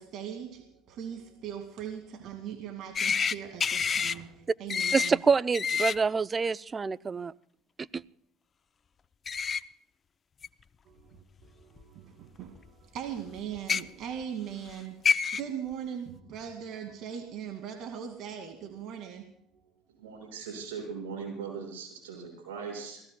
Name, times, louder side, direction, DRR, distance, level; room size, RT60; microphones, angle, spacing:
voice 1, 0.0-5.2 10.9-19.3 19.5-19.6, right 8 dB, 60° right, 4 dB, 2.2 m, -40 dB
sound 1, 3.0-3.3 3.6-4.1 4.7-5.1 5.5-5.9 9.3-9.6 10.4-10.5 11.8-11.9 13.6-13.8 14.7-14.8 15.1-15.4, left 6 dB, 35° left, 0.6 m, -27 dB
voice 2, 4.9-7.3 7.9-8.0, right 5 dB, 30° right, 18 dB, 0.5 m, -26 dB
voice 3, 20.0-23.0, right 5 dB, 85° right, 1 dB, 5.6 m, -39 dB
28.5 x 17.5 x 2.3 m, 0.68 s
hypercardioid pair, 70°, 0 cm